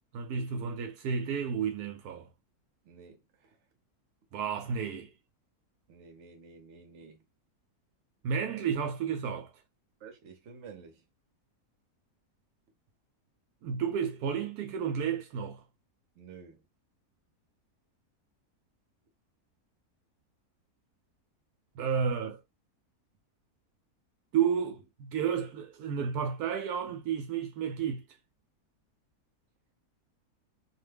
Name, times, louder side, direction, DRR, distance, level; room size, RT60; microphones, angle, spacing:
voice 1, 0.1-2.3 4.3-5.1 8.2-9.5 13.6-15.6 21.7-22.4 24.3-28.0, right 7 dB, 80° right, 1.1 m, -31 dB
voice 2, 2.8-3.6 5.9-7.2 10.0-11.0 16.1-16.6, right 5 dB, 55° right, 1.0 m, -51 dB
2.8 x 2.2 x 3.3 m
omnidirectional pair, 1.6 m